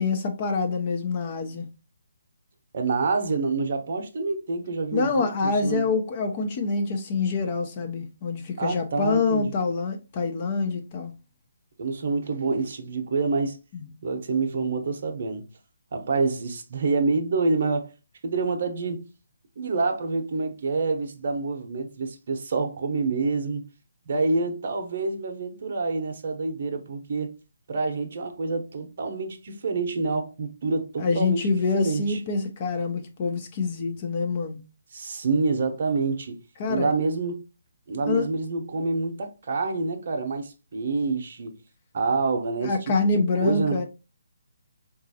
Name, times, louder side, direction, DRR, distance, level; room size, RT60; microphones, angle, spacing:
voice 1, 0.0-1.7 4.9-11.1 13.7-13.9 31.0-34.6 36.6-36.9 38.1-38.3 42.6-43.8, left 4 dB, 35° left, 0.5 m, -26 dB
voice 2, 2.7-5.8 8.6-9.5 11.8-13.6 14.0-15.4 15.9-17.9 18.2-19.0 19.6-23.6 24.1-27.3 27.7-31.5 31.7-32.2 34.9-36.4 36.7-37.4 37.9-41.5 41.9-43.8, right 3 dB, 50° right, 0.7 m, -27 dB
3.9 x 2.4 x 2.6 m
hypercardioid pair, 155°, 0 cm